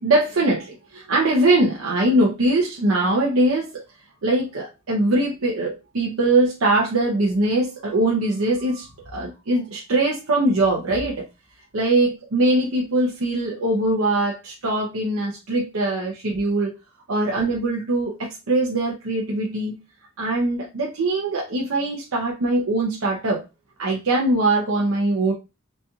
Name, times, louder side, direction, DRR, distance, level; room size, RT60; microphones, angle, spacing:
voice 1, 0.0-3.8 4.2-11.3 11.7-16.7 17.1-19.8 20.2-23.4 23.8-25.3, right 2 dB, 85° right, -2 dB, 0.7 m, -22 dB
4.1 x 2.3 x 2.7 m, 0.26 s
head